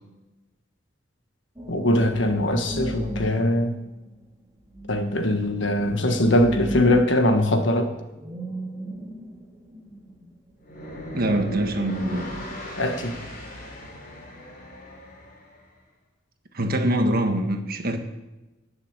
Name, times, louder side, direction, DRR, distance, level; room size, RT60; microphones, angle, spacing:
sound 1, 1.6-12.6, right 1 dB, 15° right, 2.1 m, -36 dB
voice 1, 1.7-3.8 4.9-7.9 12.8-13.2, left 1 dB, 65° left, 1.6 m, -21 dB
sound 2, 10.6-15.7, left 1 dB, 50° left, 3.4 m, -39 dB
voice 2, 11.1-12.3 16.5-18.0, right 1 dB, 50° right, 1.6 m, -24 dB
18.5 x 6.9 x 7.4 m
head